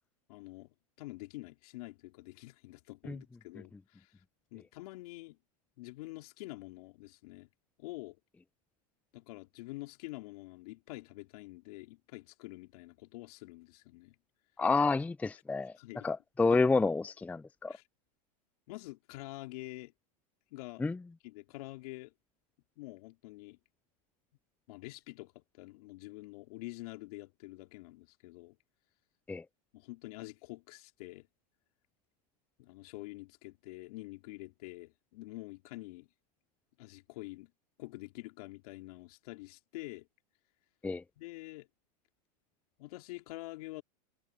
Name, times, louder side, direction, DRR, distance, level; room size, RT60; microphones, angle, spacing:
voice 1, 0.3-4.1 4.5-5.4 5.8-7.5 7.8-8.2 9.1-14.1 15.8-16.1 16.5-16.6 17.7-17.8 18.7-19.9 20.5-20.8 21.2-22.1 22.8-23.6 24.7-28.6 29.7-31.3 32.6-36.1 36.8-37.5 37.8-40.1 41.2-41.7 42.8-43.8, left 21 dB, 60° left, 3.3 m, -47 dB
voice 2, 14.6-15.7 16.0-17.7 20.8-21.0 29.3-29.4 40.8-41.0, left 3 dB, 5° left, 0.5 m, -29 dB
hypercardioid pair, 120°, 21 cm